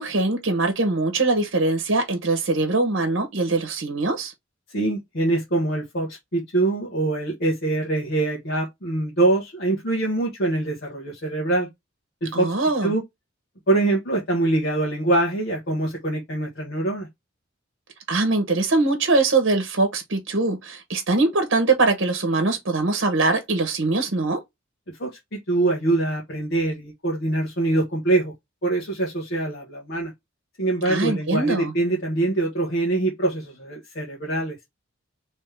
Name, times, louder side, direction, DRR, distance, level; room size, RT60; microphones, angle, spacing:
voice 1, 0.0-4.3 12.3-13.0 18.1-24.4 30.8-31.7, right 3 dB, 65° right, 1.0 m, -22 dB
voice 2, 4.7-11.7 12.2-12.5 12.8-13.0 13.7-17.1 25.0-25.1 25.5-28.3 28.6-30.1 30.6-34.6, right 2 dB, 55° left, 1.2 m, -24 dB
3.4 x 3.1 x 3.3 m
head